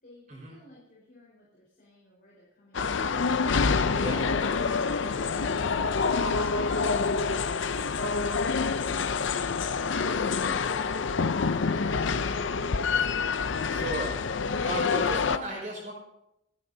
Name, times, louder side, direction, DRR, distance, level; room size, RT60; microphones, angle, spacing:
voice 1, 0.0-3.2 3.8-6.7, left 1 dB, 45° left, -6 dB, 4.6 m, -53 dB
sound 1, 2.7-15.4, left 5 dB, 65° left, 0.5 m, -27 dB
voice 2, 13.7-15.9, right 1 dB, 40° right, -3 dB, 5.3 m, -35 dB
27.5 x 9.5 x 2.8 m, 0.86 s
head